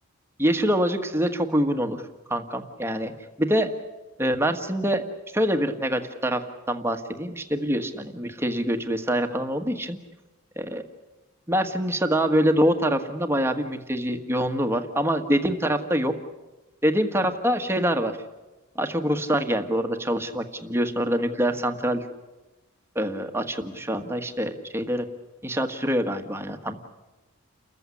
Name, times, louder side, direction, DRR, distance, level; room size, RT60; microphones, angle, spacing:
voice 1, 0.4-2.0 2.3-3.1 3.4-3.7 4.2-5.0 5.3-10.0 10.6-10.8 11.5-16.1 16.8-18.1 18.7-22.1 22.9-25.1 25.4-26.8, equal, 10° right, 6 dB, 1.6 m, -25 dB
30.0 x 15.0 x 9.9 m, 1.1 s
head